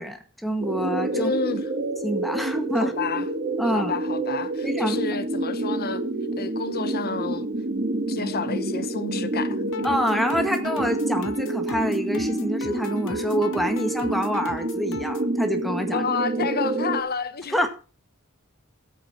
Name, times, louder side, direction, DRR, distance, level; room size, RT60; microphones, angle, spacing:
voice 1, 0.0-1.3 2.0-2.9 3.6-3.9 4.6-5.0 9.8-16.0 17.5-17.7, equal, ahead, 1.8 m, -26 dB
sound 1, 0.6-17.0, right 2 dB, 40° right, 2.1 m, -28 dB
voice 2, 1.1-1.7 2.8-3.3 3.6-6.0 6.4-7.5 8.1-9.6 15.9-17.6, left 5 dB, 45° left, 1.1 m, -30 dB
sound 2, 9.7-15.3, left 5 dB, 65° left, 0.8 m, -38 dB
14.0 x 8.8 x 4.5 m
head